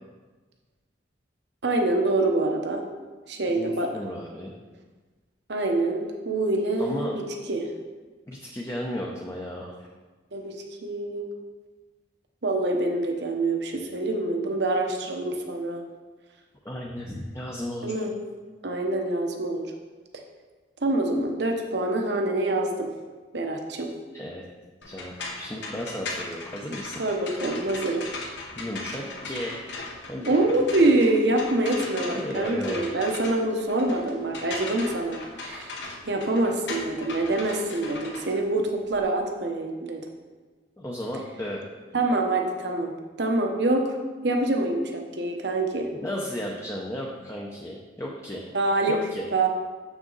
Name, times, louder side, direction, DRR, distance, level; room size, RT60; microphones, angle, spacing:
voice 1, 1.6-2.8 3.3-3.9 5.5-7.2 7.5-7.7 10.3-10.5 10.8-11.3 12.4-15.8 17.8-18.1 18.6-19.7 20.8-22.9 23.3-23.9 27.0-28.0 30.3-35.7 36.1-40.0 41.9-43.9 44.2-45.9 48.5-49.0 49.3-49.5, right 2 dB, 65° right, 3 dB, 0.9 m, -25 dB
voice 2, 3.5-4.5 6.8-7.1 8.3-9.9 16.6-18.0 24.1-24.4 24.8-26.9 28.6-29.7 30.1-30.6 32.1-32.9 40.8-41.7 45.9-48.5 48.9-49.2, equal, 15° left, -2 dB, 0.6 m, -34 dB
sound 1, 24.8-39.0, left 3 dB, 70° left, 1.2 m, -38 dB
7.4 x 6.1 x 4.0 m, 1.3 s
head